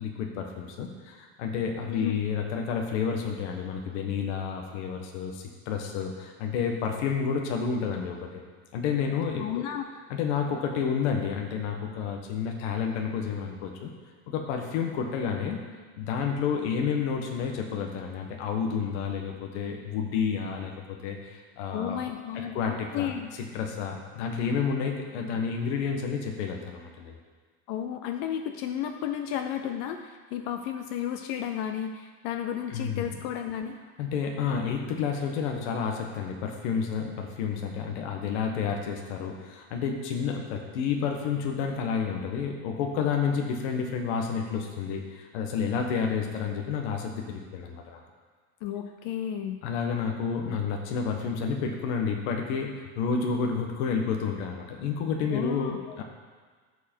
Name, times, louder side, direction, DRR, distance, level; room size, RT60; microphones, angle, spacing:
voice 1, 0.0-8.4 8.7-9.6 10.1-13.9 14.3-15.6 16.0-22.0 22.3-23.1 23.5-27.2 32.7-33.0 34.0-48.0 49.6-56.0, left 6 dB, 65° left, 2 dB, 1.3 m, -30 dB
voice 2, 1.9-2.2 9.4-9.8 21.7-23.3 27.7-33.8 48.6-49.6 55.3-56.0, left 9 dB, 35° left, 6 dB, 0.4 m, -33 dB
14.0 x 4.8 x 4.5 m, 1.5 s
supercardioid pair, 170°, 38 cm